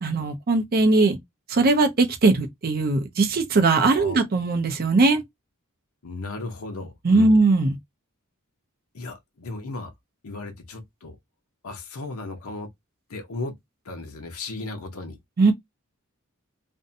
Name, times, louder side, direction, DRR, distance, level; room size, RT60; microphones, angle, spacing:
voice 1, 0.0-1.2 1.5-5.2 7.0-7.8 15.4-15.5, right 3 dB, 45° right, 0.5 m, -20 dB
voice 2, 6.0-7.4 8.9-9.9 10.2-11.2 11.6-12.7 13.1-13.5 13.8-15.2, left 3 dB, 70° left, 0.7 m, -35 dB
2.6 x 2.1 x 2.6 m
head